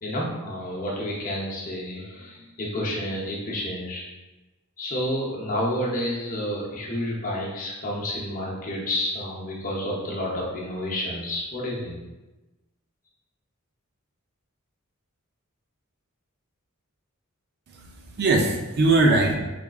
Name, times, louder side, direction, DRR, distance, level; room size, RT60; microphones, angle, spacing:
voice 1, 0.0-4.0 4.8-12.0, left 1 dB, 40° left, -4 dB, 0.8 m, -30 dB
voice 2, 17.7-19.3, right 2 dB, 50° right, 2 dB, 0.5 m, -21 dB
3.6 x 3.4 x 2.4 m, 1.1 s
head